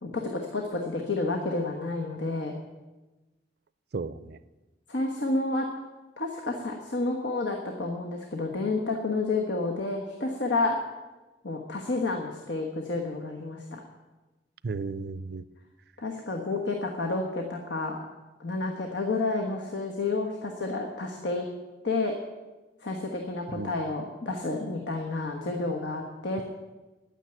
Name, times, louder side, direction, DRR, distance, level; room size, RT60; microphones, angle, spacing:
voice 1, 0.0-2.5 4.9-5.7 6.2-10.8 11.4-13.8 16.0-18.0 18.4-21.5 21.8-22.2 22.8-26.4, left 3 dB, 85° left, 2 dB, 1.4 m, -30 dB
voice 2, 3.9-4.4 14.6-15.4 23.5-23.7, right 4 dB, 60° right, 16 dB, 0.5 m, -34 dB
10.0 x 9.2 x 9.1 m, 1.2 s
head